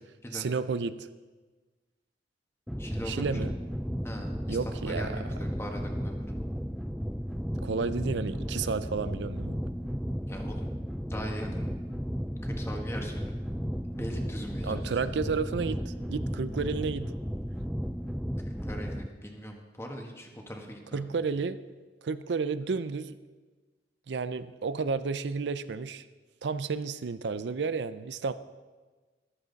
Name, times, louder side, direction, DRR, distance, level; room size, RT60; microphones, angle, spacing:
voice 1, 0.3-1.1 3.1-3.5 4.5-5.1 7.6-9.6 14.6-17.1 20.9-21.6 22.0-23.2 24.1-26.0 26.4-28.3, right 4 dB, 75° right, 13 dB, 0.5 m, -31 dB
sound 1, 2.7-19.1, equal, ahead, 0.3 m, -34 dB
voice 2, 2.8-3.3 4.0-6.2 10.3-10.7 11.0-11.7 12.4-13.4 14.0-14.8 18.4-21.2, equal, 15° left, 2 dB, 1.5 m, -40 dB
14.0 x 12.0 x 4.0 m, 1.3 s
head